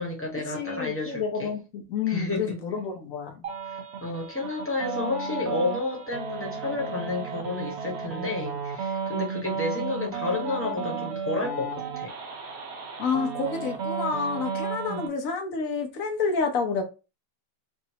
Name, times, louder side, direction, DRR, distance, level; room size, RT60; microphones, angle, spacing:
voice 1, 0.0-1.5 2.1-2.6 3.7-12.1 14.8-15.1, left 3 dB, 10° left, 1.0 m, -31 dB
voice 2, 0.5-3.4 13.0-16.8, left 5 dB, 55° left, 1.0 m, -29 dB
sound 1, 3.4-15.1, right 5 dB, 85° right, 0.5 m, -33 dB
5.1 x 2.6 x 2.8 m
omnidirectional pair, 2.2 m